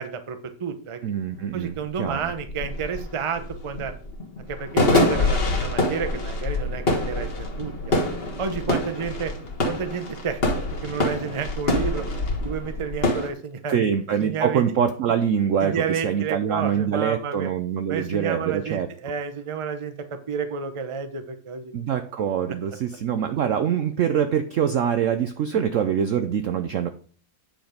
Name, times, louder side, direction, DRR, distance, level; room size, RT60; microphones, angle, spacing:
voice 1, 0.0-1.0 1.5-3.9 4.5-8.0 8.4-9.3 9.7-10.4 10.8-12.0 12.4-13.9 14.2-14.7 15.6-17.5 17.9-21.7 25.5-25.6, right 6 dB, 40° right, 8 dB, 0.4 m, -30 dB
voice 2, 1.0-2.3 13.7-18.9 21.7-26.9, right 8 dB, 85° right, 9 dB, 0.6 m, -24 dB
sound 1, 1.4-1.5 1.8-13.3, left 2 dB, 35° left, 1.6 m, -25 dB
9.0 x 5.1 x 5.0 m, 0.43 s
omnidirectional pair, 2.0 m